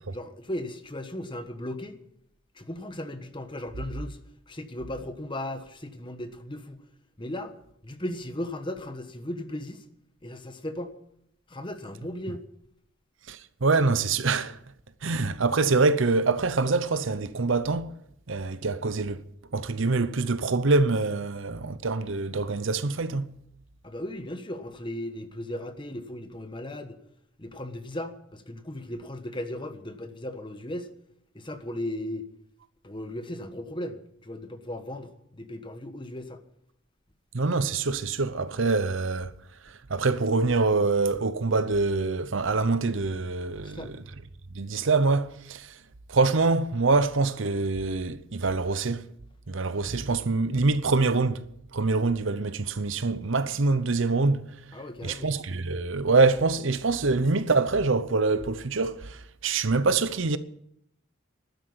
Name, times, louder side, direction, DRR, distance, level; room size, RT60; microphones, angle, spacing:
voice 1, 0.1-2.0 2.5-4.2 4.5-6.8 7.2-7.5 7.8-9.8 10.2-10.9 11.5-12.5 23.8-27.0 27.4-30.9 31.3-32.2 32.8-36.4 43.5-43.9 54.7-55.3, left 1 dB, 25° left, 1.3 m, -36 dB
voice 2, 13.3-14.6 15.0-17.9 18.3-19.2 19.5-23.3 37.3-39.3 39.7-44.0 44.5-45.7 46.1-49.1 49.5-51.4 51.7-54.5 55.0-60.4, right 3 dB, 65° right, 0.8 m, -25 dB
12.5 x 10.0 x 9.6 m
head